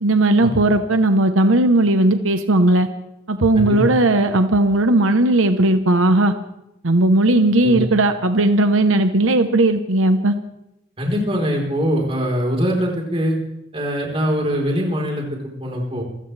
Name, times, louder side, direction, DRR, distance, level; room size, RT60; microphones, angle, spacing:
voice 1, 0.0-2.9 3.3-6.3 6.8-10.3, right 2 dB, 90° right, 8 dB, 1.1 m, -16 dB
voice 2, 3.5-3.9 7.6-7.9 11.0-13.4 13.7-16.0, equal, 30° right, -1 dB, 4.1 m, -22 dB
27.5 x 15.5 x 3.4 m, 0.85 s
head